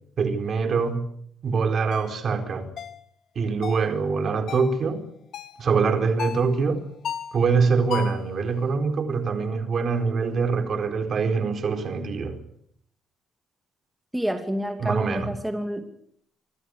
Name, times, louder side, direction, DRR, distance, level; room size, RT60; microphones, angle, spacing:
voice 1, 0.2-1.1 1.4-2.7 3.3-5.1 5.6-6.8 7.3-12.4 14.8-15.4, right 5 dB, 45° right, 4.5 m, -24 dB
sound 1, 1.9-2.1 2.8-3.0 3.6-3.9 4.5-4.7 5.3-5.6 6.2-6.5 7.0-7.4 7.9-8.3, left 8 dB, 60° left, 2.9 m, -33 dB
voice 2, 14.1-15.9, equal, 5° right, 2.5 m, -28 dB
26.5 x 23.5 x 6.7 m
cardioid pair, 140°, 0 cm